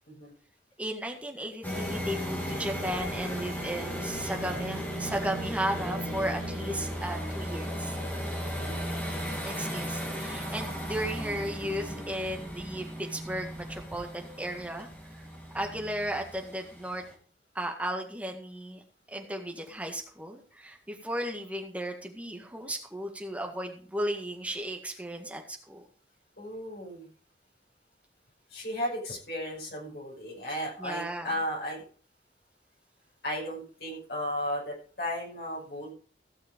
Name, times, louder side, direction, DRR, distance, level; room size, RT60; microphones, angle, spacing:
voice 1, 0.8-7.9 9.2-14.9 15.1-15.3 15.5-17.0 17.5-18.8 19.1-25.8 30.8-31.4, right 1 dB, 10° right, 3 dB, 1.8 m, -35 dB
sound 1, 1.6-17.1, equal, 10° left, 3.0 m, -36 dB
voice 2, 8.5-8.8 26.4-27.1 28.5-31.8 33.2-35.9, equal, 60° left, -3 dB, 5.8 m, -35 dB
16.0 x 6.5 x 5.2 m, 0.41 s
head